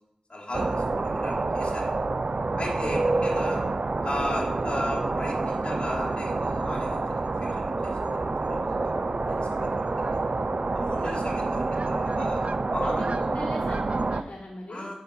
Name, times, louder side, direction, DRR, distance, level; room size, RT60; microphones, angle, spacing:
voice 1, 0.3-1.9 2.5-3.6 4.0-10.1 10.7-13.0 14.7-14.9, left 1 dB, 45° left, -2 dB, 2.7 m, -36 dB
sound 1, 0.5-14.2, right 3 dB, 55° right, 0.5 m, -27 dB
voice 2, 2.9-3.2 11.0-11.4 12.8-14.9, left 1 dB, 75° left, -4 dB, 2.0 m, -40 dB
6.3 x 5.4 x 7.0 m, 0.83 s
wide cardioid pair, 55°, 3 cm